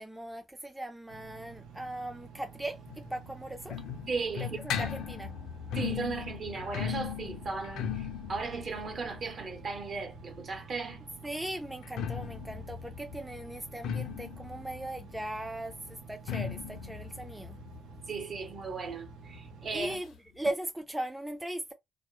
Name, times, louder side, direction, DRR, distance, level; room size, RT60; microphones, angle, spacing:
voice 1, 0.0-3.8 4.4-5.3 11.2-15.7 16.1-17.6 19.7-21.7, right 1 dB, 10° right, 0.3 m, -38 dB
Engine, 1.1-20.0, right 5 dB, 90° right, 0.5 m, -50 dB
sound 1, 2.9-10.6 11.7-19.1 19.3-19.4 19.7-19.8 20.5-20.6, left 8 dB, 85° left, 0.4 m, -38 dB
voice 2, 4.1-4.6 5.7-11.0 18.1-20.0, right 4 dB, 50° right, 0.8 m, -36 dB
2.1 x 2.0 x 2.9 m
cardioid pair, 90°, 0 cm